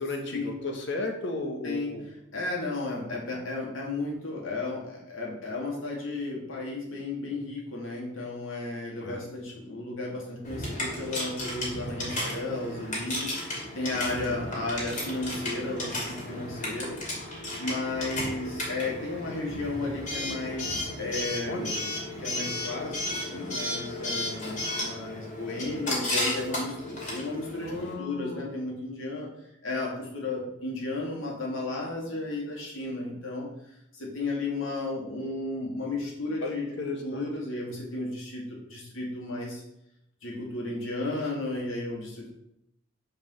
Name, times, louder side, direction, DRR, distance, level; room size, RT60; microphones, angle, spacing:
voice 1, 0.0-2.1 9.0-9.2 14.3-14.4 21.4-21.8 27.6-28.5 36.4-37.3, left 2 dB, 60° left, 3 dB, 1.4 m, -34 dB
voice 2, 1.6-2.0 2.3-17.0 17.6-21.9 22.2-27.7 28.0-29.3 29.6-33.5 33.9-36.7 37.0-39.6 40.2-42.3, left 2 dB, 75° left, -3 dB, 2.4 m, -34 dB
Coin (dropping) / Alarm, 10.4-27.9, left 1 dB, 40° left, 2.5 m, -34 dB
5.4 x 5.1 x 6.3 m, 0.81 s
head